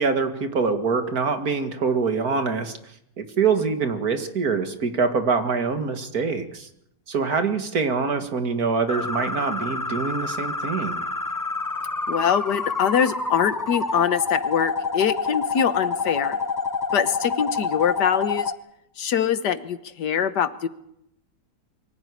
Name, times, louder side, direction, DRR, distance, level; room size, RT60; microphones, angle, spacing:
voice 1, 0.0-6.7 7.1-11.1, right 5 dB, 60° right, 8 dB, 2.4 m, -24 dB
sound 1, 8.9-18.5, left 4 dB, 25° left, 0.4 m, -28 dB
voice 2, 12.1-16.4 16.9-18.5 19.0-20.7, left 8 dB, 75° left, 12 dB, 1.8 m, -23 dB
23.5 x 15.0 x 9.7 m, 0.77 s
omnidirectional pair, 1.8 m